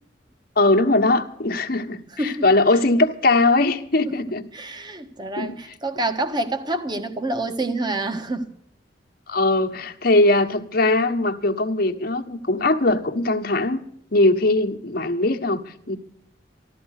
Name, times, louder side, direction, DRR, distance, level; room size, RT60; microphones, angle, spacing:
voice 1, 0.6-4.4 5.4-5.6 9.3-13.8 14.1-15.6 15.9-16.0, left 2 dB, 55° left, 1.3 m, -20 dB
voice 2, 2.1-2.5 4.1-4.2 4.5-8.5, right 2 dB, 25° right, 1.3 m, -27 dB
15.0 x 12.5 x 6.5 m
head